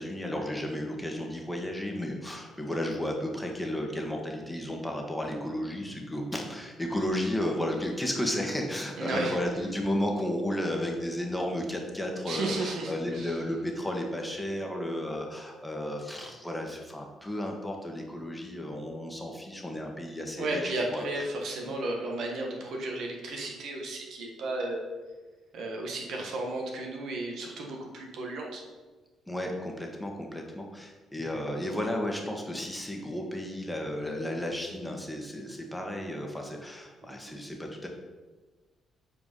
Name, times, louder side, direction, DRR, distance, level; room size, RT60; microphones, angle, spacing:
voice 1, 0.0-21.1 21.6-21.7 29.3-37.9, left 1 dB, 5° left, 1 dB, 1.5 m, -33 dB
voice 2, 9.0-9.4 12.3-13.3 20.4-24.8 25.5-28.6, right 2 dB, 70° right, 1 dB, 1.5 m, -33 dB
7.9 x 4.7 x 5.5 m, 1.3 s
cardioid pair, 90°, 0 cm